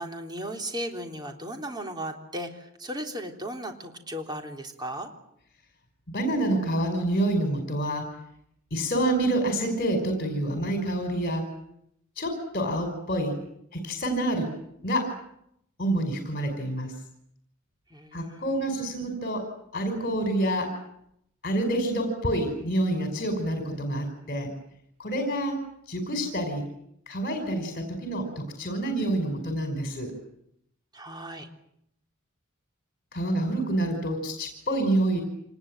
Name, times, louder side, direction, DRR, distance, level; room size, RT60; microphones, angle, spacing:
voice 1, 0.0-5.1 17.9-18.9 30.9-31.5, equal, 20° right, 3 dB, 3.6 m, -36 dB
voice 2, 6.1-8.0 8.7-11.4 12.2-13.3 13.7-14.5 14.8-15.1 15.8-16.9 18.1-19.4 19.7-20.7 21.4-24.5 25.0-25.6 25.9-26.6 27.1-30.1 33.1-35.2, right 1 dB, 45° left, 4 dB, 5.3 m, -27 dB
26.5 x 20.0 x 9.1 m, 0.75 s
head